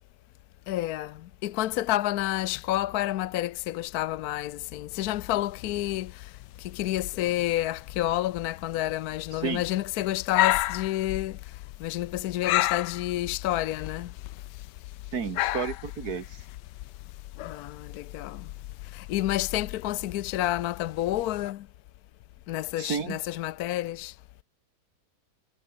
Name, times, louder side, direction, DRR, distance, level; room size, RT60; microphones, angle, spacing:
voice 1, 0.7-1.1 1.4-6.1 6.7-11.4 11.8-14.1 17.5-18.4 18.9-21.6 22.5-24.1, left 14 dB, 70° left, 1.0 m, -29 dB
sound 1, 4.9-21.5, left 16 dB, 90° left, 1.2 m, -34 dB
voice 2, 15.1-16.4 22.8-23.2, right 6 dB, 65° right, 2.3 m, -31 dB
omnidirectional pair, 1.8 m